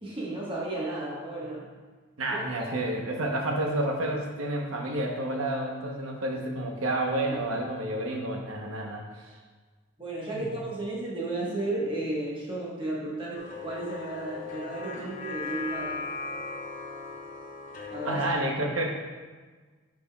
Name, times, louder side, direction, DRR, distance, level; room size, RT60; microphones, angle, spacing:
voice 1, 0.0-1.7 2.3-2.4 7.3-7.4 10.0-16.0 17.9-18.2, right 2 dB, 25° right, -5 dB, 1.2 m, -33 dB
voice 2, 2.2-9.3 10.3-10.5 18.0-18.9, right 1 dB, 85° right, 1 dB, 0.9 m, -30 dB
sound 1, 13.4-18.3, left 4 dB, 40° left, 0.6 m, -38 dB
8.8 x 5.0 x 2.3 m, 1.4 s
head